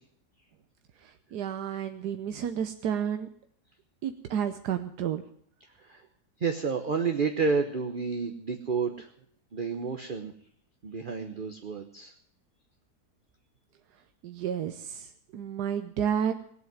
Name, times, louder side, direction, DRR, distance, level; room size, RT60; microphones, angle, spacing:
voice 1, 1.0-3.3 4.0-5.2 14.2-16.3, right 8 dB, 90° right, 8 dB, 1.4 m, -31 dB
voice 2, 6.4-9.1 9.5-10.3 10.8-12.1, right 5 dB, 35° right, 6 dB, 1.0 m, -30 dB
18.5 x 8.3 x 9.3 m, 0.63 s
omnidirectional pair, 1.7 m